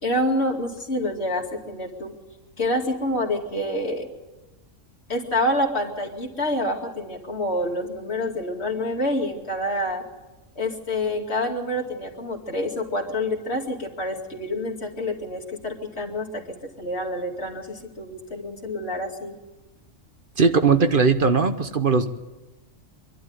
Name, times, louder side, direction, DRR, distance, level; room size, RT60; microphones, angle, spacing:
voice 1, 0.0-2.1 2.6-4.1 5.1-10.0 10.6-19.3, left 1 dB, 55° left, 2 dB, 2.7 m, -27 dB
voice 2, 20.4-22.1, right 5 dB, 45° right, 9 dB, 1.0 m, -19 dB
25.0 x 12.0 x 9.5 m, 1.1 s
omnidirectional pair, 1.3 m